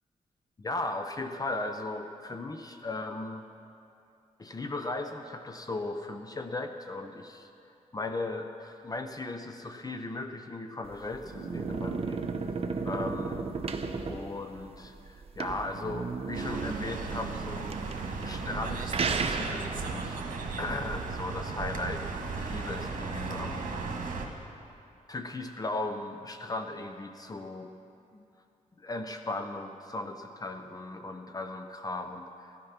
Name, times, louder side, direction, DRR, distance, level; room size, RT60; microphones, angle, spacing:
voice 1, 0.6-3.4 4.4-7.5 7.9-12.3 12.8-13.5 14.1-17.7 18.2-20.2 20.6-22.0 22.4-23.6 25.1-27.7 28.1-28.2 28.8-32.7, left 2 dB, 25° left, 6 dB, 0.7 m, -37 dB
sound 1, 10.8-20.1, right 4 dB, 45° right, 0.9 m, -34 dB
sound 2, 16.3-24.3, right 4 dB, 75° right, 1.7 m, -36 dB
14.5 x 11.0 x 5.8 m, 2.5 s
cardioid pair, 105°, 14 cm